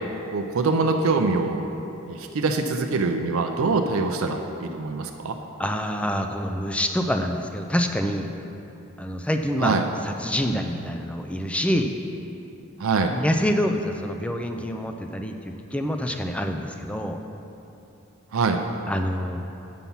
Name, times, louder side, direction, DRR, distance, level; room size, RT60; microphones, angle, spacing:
voice 1, 0.3-1.6 2.1-5.3 9.6-9.8 12.8-13.1 18.3-18.6, right 3 dB, 75° right, 4 dB, 0.5 m, -24 dB
voice 2, 5.6-8.3 9.0-9.7 10.0-12.0 13.1-17.2 18.9-19.4, equal, 5° left, 5 dB, 0.3 m, -26 dB
8.4 x 5.8 x 5.4 m, 2.9 s
head